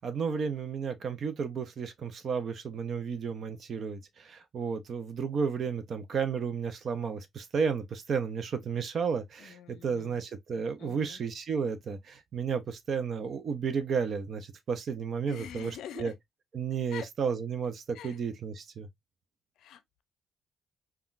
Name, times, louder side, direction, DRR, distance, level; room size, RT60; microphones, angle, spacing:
voice 1, 0.0-16.1 16.5-18.9, right 6 dB, 55° right, 0.5 m, -32 dB
voice 2, 9.4-10.2 10.8-11.2 15.3-16.1 16.9-17.1 17.9-18.2 19.6-20.0, left 9 dB, 80° left, 0.5 m, -44 dB
3.6 x 2.3 x 2.4 m
cardioid pair, 90°, 0 cm